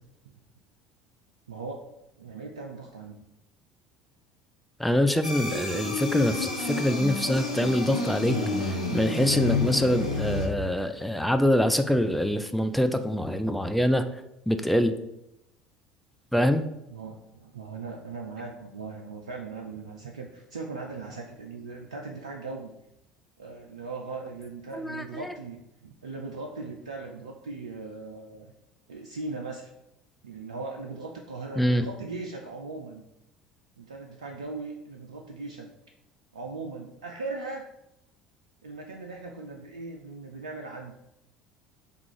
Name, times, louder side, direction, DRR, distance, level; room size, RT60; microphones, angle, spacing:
voice 1, 1.5-1.8 2.2-3.2 16.9-22.7 23.4-28.5 28.9-29.7 30.2-33.0 33.8-35.7 36.3-37.7 38.6-40.9, right 3 dB, 80° right, 1 dB, 0.3 m, -39 dB
voice 2, 4.8-8.4 8.7-14.1 14.5-14.9 16.3-16.6 24.7-25.0 31.6-31.9, equal, ahead, 8 dB, 0.4 m, -24 dB
sound 1, 5.2-10.5, left 3 dB, 90° left, 0.6 m, -29 dB
3.7 x 2.4 x 4.6 m, 0.86 s
figure-of-eight pair, 65°, 3 cm